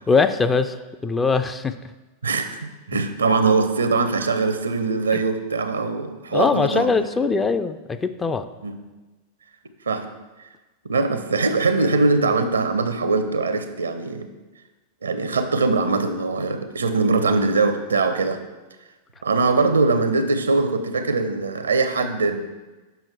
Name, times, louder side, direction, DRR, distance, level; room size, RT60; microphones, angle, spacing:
voice 1, 0.1-0.8 1.0-1.8 5.1-5.2 6.3-8.4, left 4 dB, 15° left, 9 dB, 0.4 m, -21 dB
voice 2, 2.2-6.9 8.6-8.8 9.9-10.1 10.8-14.3 15.0-18.4 19.2-22.5, right 3 dB, 75° right, 9 dB, 0.6 m, -22 dB
6.9 x 5.7 x 4.5 m, 1.2 s
figure-of-eight pair, 90°, 0 cm